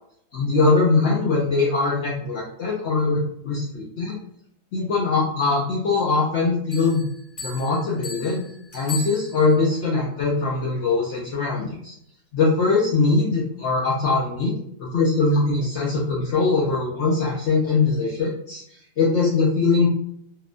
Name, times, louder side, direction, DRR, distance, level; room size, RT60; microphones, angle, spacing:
voice 1, 0.3-4.2 4.7-7.0 7.4-8.4 8.7-11.9 12.3-14.5 14.8-18.6 19.0-19.9, left 3 dB, 65° left, -5 dB, 0.8 m, -21 dB
Bell, 6.7-9.8, left 3 dB, 45° left, 1.0 m, -37 dB
2.8 x 2.1 x 2.4 m, 0.69 s
omnidirectional pair, 1.4 m